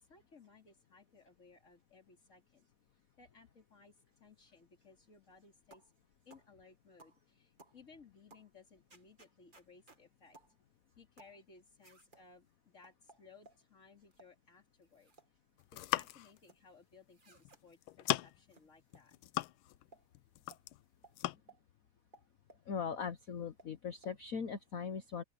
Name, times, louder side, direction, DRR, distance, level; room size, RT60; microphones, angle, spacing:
voice 1, 0.1-2.7 3.2-5.9 6.3-10.4 11.0-15.1 15.7-19.2, left 4 dB, 35° left, 3.6 m, -61 dB
sound 1, 5.7-5.9 6.3-6.5 7.0-7.2 7.6-7.8 8.3-8.5 8.9-10.0 10.3-10.5 11.2-11.4 11.8-12.2 12.8-13.6 14.1-14.3 14.8-15.3 15.6-16.6 17.1-17.6 18.1-18.2 18.5-18.6 18.9-19.0 19.4-19.5 19.9-20.0 20.5-20.6 21.0-21.2 21.5-21.6 22.1-22.6 23.1-23.2 23.6-23.7 24.0-24.1, right 3 dB, 25° right, 2.0 m, -61 dB
sound 2, 15.6-16.4 17.4-17.5 17.8-18.5 18.9-19.9 20.1-20.8 21.2-21.4, left 16 dB, 85° left, 1.5 m, -37 dB
voice 2, 22.7-25.2, left 6 dB, 50° left, 1.2 m, -40 dB
open air
omnidirectional pair, 2.3 m